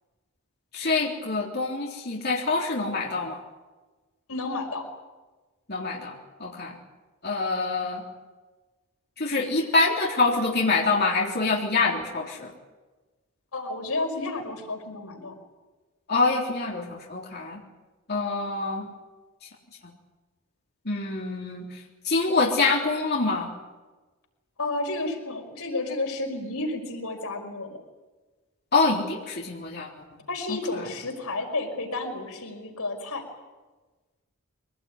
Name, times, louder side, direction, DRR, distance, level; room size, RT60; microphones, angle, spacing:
voice 1, 0.7-3.4 5.7-6.1 6.4-6.8 7.2-8.0 9.2-12.5 16.1-17.6 18.1-18.9 20.9-21.7 22.0-23.5 28.7-29.9 30.5-30.6, left 3 dB, 50° left, -3 dB, 3.6 m, -25 dB
voice 2, 4.3-4.8 13.5-15.3 24.6-27.8 30.3-33.2, left 2 dB, 90° left, 2 dB, 5.4 m, -31 dB
24.0 x 19.0 x 9.6 m, 1.3 s
head